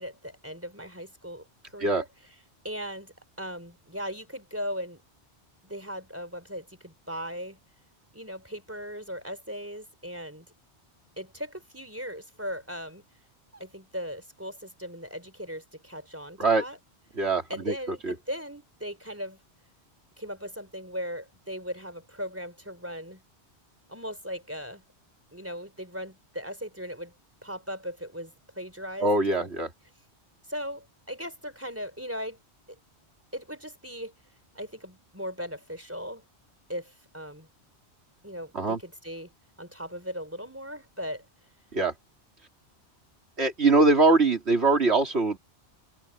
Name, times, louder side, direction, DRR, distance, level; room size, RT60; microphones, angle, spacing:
voice 1, 0.0-2.1 2.6-5.0 5.6-7.6 8.1-10.5 11.2-13.0 13.5-16.8 17.5-19.4 20.2-23.2 23.9-24.8 25.3-27.1 27.4-29.1 29.4-29.5 30.5-32.4 33.3-34.1 34.5-36.2 36.7-37.5 38.2-39.3 39.6-41.3, equal, 10° right, 3.8 m, -38 dB
voice 2, 17.2-18.2 29.0-29.7 38.5-38.8 41.7-41.9 43.4-45.4, right 3 dB, 70° right, 3.6 m, -23 dB
omnidirectional pair, 1.2 m